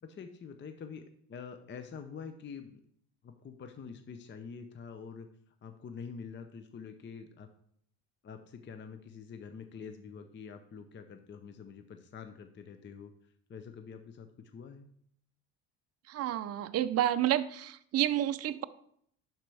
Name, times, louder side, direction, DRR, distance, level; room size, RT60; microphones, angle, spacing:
voice 1, 0.0-2.8 3.2-7.5 8.2-14.9, left 6 dB, 25° left, 7 dB, 0.6 m, -46 dB
voice 2, 16.1-18.6, right 12 dB, 35° right, 11 dB, 0.5 m, -30 dB
11.5 x 4.4 x 3.4 m, 0.66 s
supercardioid pair, 85°, 42 cm